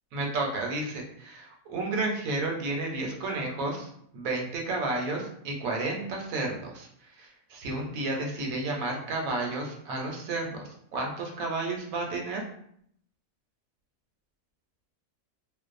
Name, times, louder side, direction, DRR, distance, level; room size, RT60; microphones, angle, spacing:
voice 1, 0.1-6.9 7.2-12.4, right 2 dB, 70° right, 1 dB, 0.9 m, -32 dB
2.5 x 2.1 x 2.4 m, 0.68 s
omnidirectional pair, 1.6 m